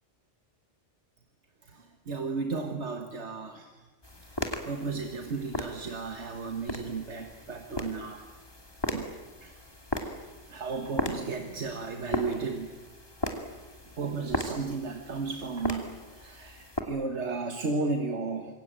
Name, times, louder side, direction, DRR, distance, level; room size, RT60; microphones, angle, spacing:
voice 1, 1.6-3.9 4.4-8.2 8.9-9.1 9.4-9.6 10.0-10.2 10.5-12.8 14.0-18.5, right 4 dB, 85° right, 5 dB, 1.9 m, -34 dB
sound 1, 4.0-16.8, left 1 dB, 20° left, 2.7 m, -37 dB
26.5 x 22.5 x 9.0 m, 1.2 s
omnidirectional pair, 1.1 m